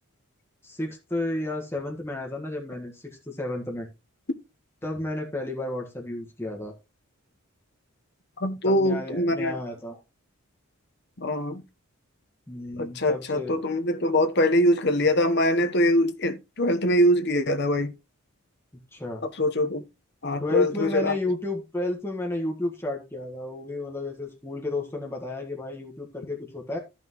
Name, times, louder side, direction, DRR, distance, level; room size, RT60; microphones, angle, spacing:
voice 1, 0.6-3.9 4.8-6.7 8.6-10.0 12.5-13.5 18.9-19.2 20.4-26.8, left 2 dB, 10° left, 1.5 m, -32 dB
voice 2, 8.4-9.5 11.2-11.6 12.8-17.9 19.4-19.8 20.2-21.1, left 1 dB, 50° left, 1.1 m, -23 dB
13.5 x 5.6 x 3.0 m
head